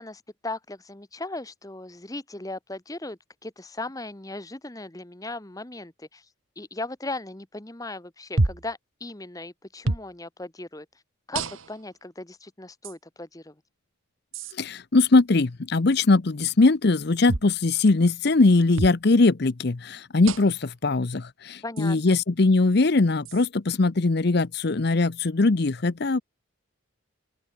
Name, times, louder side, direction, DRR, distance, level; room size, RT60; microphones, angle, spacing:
voice 1, 0.0-6.3 6.6-10.9 11.3-11.4 11.7-13.5 21.6-22.2, left 2 dB, 15° left, 1.1 m, -37 dB
sound 1, 8.4-8.7 9.8-10.1 11.3-11.9 12.8-13.0 14.3-14.5 17.3-17.5 18.8-19.0 20.3-20.6 21.8-21.9 23.3-23.5, right 2 dB, 70° right, 1.5 m, -28 dB
voice 2, 14.6-26.2, left 3 dB, 50° left, 0.7 m, -21 dB
open air
head